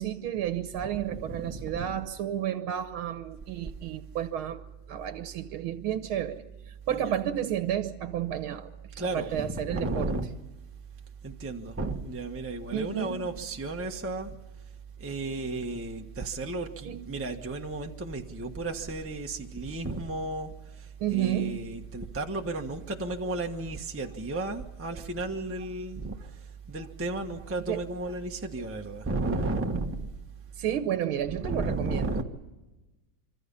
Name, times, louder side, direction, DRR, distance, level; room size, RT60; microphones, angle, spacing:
voice 1, 0.0-8.7 9.1-10.1 12.7-13.2 16.9-17.0 21.0-21.6 27.7-27.8 30.6-32.1, right 10 dB, 80° right, 1.9 m, -31 dB
voice 2, 0.7-2.0 6.9-7.2 9.0-10.3 11.2-14.4 15.0-26.4 26.7-30.1 31.3-32.2, right 2 dB, 10° right, 1.0 m, -33 dB
26.0 x 25.5 x 5.5 m
omnidirectional pair, 2.3 m